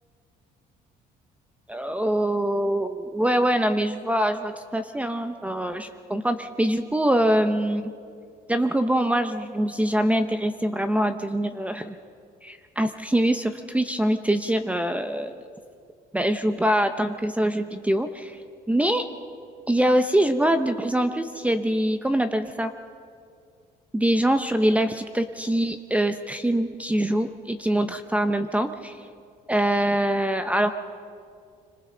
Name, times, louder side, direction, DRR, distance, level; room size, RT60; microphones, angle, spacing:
voice 1, 1.7-7.8 8.5-12.0 12.4-15.4 16.1-18.4 18.7-19.0 19.7-22.7 23.9-29.0 29.5-30.7, right 1 dB, 10° right, 8 dB, 0.8 m, -24 dB
26.5 x 25.5 x 3.9 m, 2.3 s
cardioid pair, 110°, 17 cm